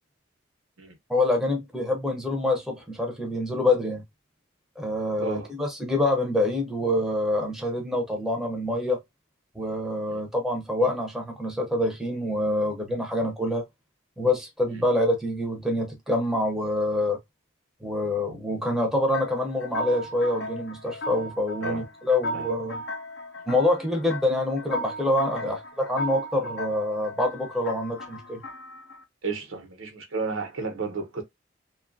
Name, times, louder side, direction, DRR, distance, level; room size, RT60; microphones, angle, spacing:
voice 1, 1.1-4.0 4.8-9.0 9.5-13.6 14.2-17.2 17.8-22.8 23.5-28.4, left 1 dB, ahead, 0.6 m, -26 dB
sound 1, 19.1-29.0, left 1 dB, 55° left, 0.5 m, -36 dB
voice 2, 29.2-31.2, right 4 dB, 85° right, 0.9 m, -32 dB
2.7 x 2.3 x 2.5 m
head